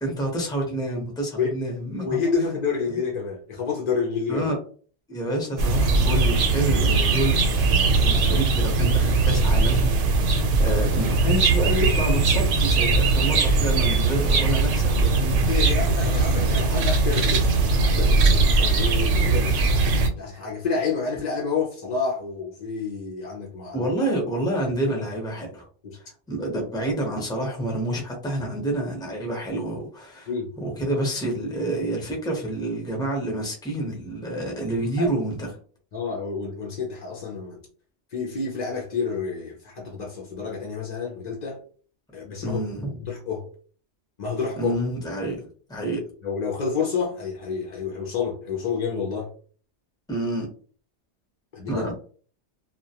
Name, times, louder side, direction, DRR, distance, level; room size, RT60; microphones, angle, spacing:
voice 1, 0.0-2.2 4.3-4.6 5.1-9.9 10.6-15.7 23.7-25.6 25.9-30.3 30.6-35.5 42.4-42.9 44.6-45.4 45.7-46.0 50.1-50.5 51.7-51.9, right 1 dB, 5° left, 0.5 m, -28 dB
voice 2, 2.0-4.4 15.5-17.5 17.8-19.7 20.2-23.9 25.8-26.0 30.3-30.5 35.0-35.1 35.9-37.6 38.1-41.6 42.1-42.6 43.0-43.5 44.2-44.7 46.2-49.3 51.5-51.8, left 5 dB, 55° left, 0.4 m, -29 dB
sound 1, 5.6-20.1, right 3 dB, 90° right, 0.9 m, -20 dB
2.3 x 2.1 x 2.7 m
omnidirectional pair, 1.2 m